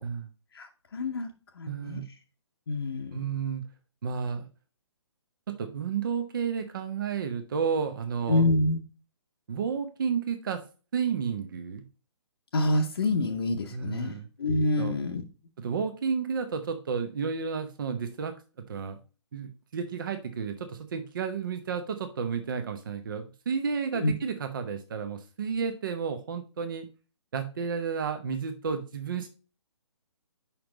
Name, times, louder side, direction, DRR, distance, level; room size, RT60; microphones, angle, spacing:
voice 1, 0.5-1.3 1.6-2.0 2.7-3.2 8.3-8.8 12.5-14.1 14.4-15.2 23.9-24.1, left 2 dB, 50° left, 3 dB, 0.8 m, -27 dB
voice 2, 1.7-2.0 3.1-3.6 4.0-4.5 5.5-8.5 9.5-10.6 10.9-11.8 13.7-14.3 14.8-15.0 15.6-18.3 18.7-19.0 19.3-26.9 27.3-29.3, right 6 dB, 45° right, 7 dB, 0.8 m, -31 dB
5.4 x 4.4 x 4.9 m, 0.34 s
figure-of-eight pair, 135°, 16 cm